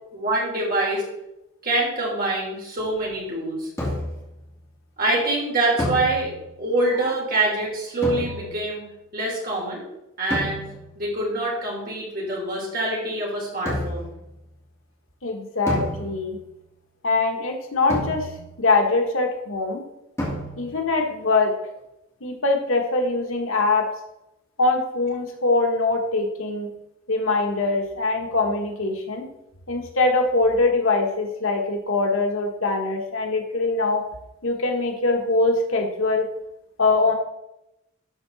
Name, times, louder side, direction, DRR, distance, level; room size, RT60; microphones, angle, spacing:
voice 1, 0.1-1.0 1.6-3.7 5.0-6.3 6.6-8.8 9.1-9.9 10.2-10.6 10.9-14.1, right 2 dB, 45° right, -3 dB, 3.3 m, -25 dB
sound 1, 3.8-4.3 5.8-6.6 8.0-8.8 10.3-11.0 13.7-14.2 15.7-16.5 17.9-18.7 20.2-20.9, equal, 10° left, 2.6 m, -30 dB
voice 2, 15.2-16.4 17.0-18.3 18.6-19.8 20.6-21.5 22.2-23.9 24.6-26.7 27.1-29.3 29.7-34.0 34.4-36.3 36.8-37.1, left 3 dB, 70° left, 2 dB, 1.4 m, -22 dB
12.5 x 4.8 x 4.1 m, 0.88 s
head